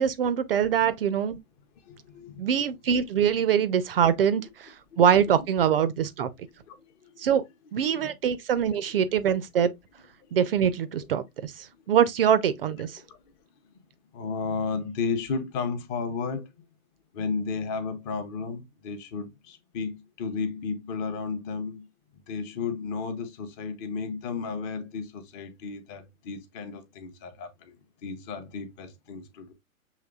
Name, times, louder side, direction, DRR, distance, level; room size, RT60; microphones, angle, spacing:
voice 1, 0.0-1.4 2.4-6.3 7.2-7.4 7.7-9.7 10.3-13.0, right 8 dB, 45° right, 0.4 m, -24 dB
voice 2, 1.8-2.5 4.9-5.0 5.3-5.5 6.4-7.3 7.9-8.2 10.2-10.3 13.0-13.3 14.1-16.5 17.1-21.9 22.3-27.7 28.0-29.5, left 5 dB, 20° left, 0.6 m, -33 dB
6.4 x 3.1 x 2.3 m
figure-of-eight pair, 115°, 43 cm